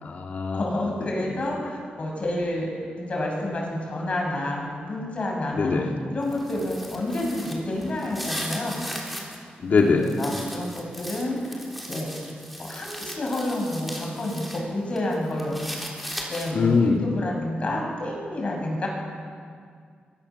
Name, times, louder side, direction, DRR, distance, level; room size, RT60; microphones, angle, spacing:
voice 1, 0.0-0.6 1.2-1.3 5.5-5.9 9.6-10.1 16.5-17.1, left 4 dB, 50° left, 1 dB, 2.2 m, -22 dB
voice 2, 0.5-2.7 3.0-5.7 6.1-8.8 10.0-11.6 11.9-12.1 12.6-15.6 16.3-18.9, left 1 dB, 35° left, -1 dB, 6.7 m, -29 dB
sound 1, 6.2-9.4 9.8-14.6 15.0-16.7, equal, ahead, 3.5 m, -37 dB
25.0 x 22.5 x 7.0 m, 2.1 s
wide cardioid pair, 175°, 4 cm